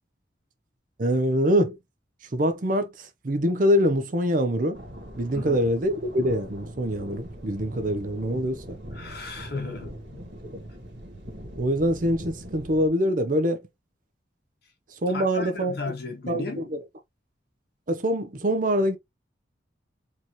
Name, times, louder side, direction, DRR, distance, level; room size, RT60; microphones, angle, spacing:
voice 1, 1.0-1.8 2.3-4.8 5.2-8.8 11.6-13.6 14.9-15.8 16.3-16.8 17.9-19.0, equal, 45° right, 0.6 m, -24 dB
sound 1, 4.7-12.9, equal, 75° right, 1.7 m, -41 dB
voice 2, 8.9-10.2 15.1-16.7, left 3 dB, 60° left, 1.6 m, -35 dB
4.6 x 2.9 x 3.0 m
head